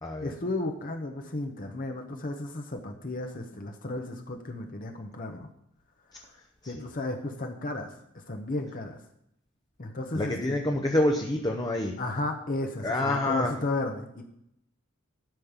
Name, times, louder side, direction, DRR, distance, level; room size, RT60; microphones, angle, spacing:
voice 1, 0.2-5.5 6.2-6.3 6.6-8.0 8.3-9.0 9.8-10.6 12.0-14.2, left 2 dB, 45° left, 3 dB, 1.0 m, -34 dB
voice 2, 10.1-11.9 12.8-13.5, left 1 dB, 20° left, 1 dB, 0.9 m, -27 dB
12.5 x 5.4 x 7.3 m, 0.76 s
head